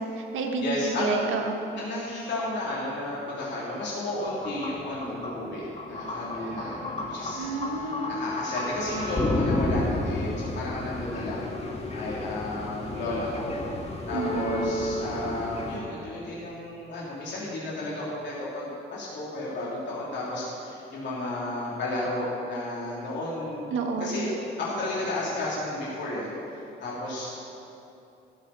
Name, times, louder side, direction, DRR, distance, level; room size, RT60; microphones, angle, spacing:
voice 1, 0.0-1.6 7.4-8.1 14.1-14.8 23.7-24.3, right 4 dB, 85° right, 3 dB, 1.6 m, -30 dB
voice 2, 0.6-1.3 1.8-7.4 7.8-11.5 11.9-13.6 14.1-23.6 24.0-24.3 24.6-26.3 26.8-27.3, left 2 dB, 60° left, -7 dB, 3.3 m, -32 dB
sound 1, 4.2-15.8, left 2 dB, 30° left, 1.9 m, -32 dB
14.5 x 13.0 x 4.3 m, 2.8 s
cardioid pair, 90°, 20 cm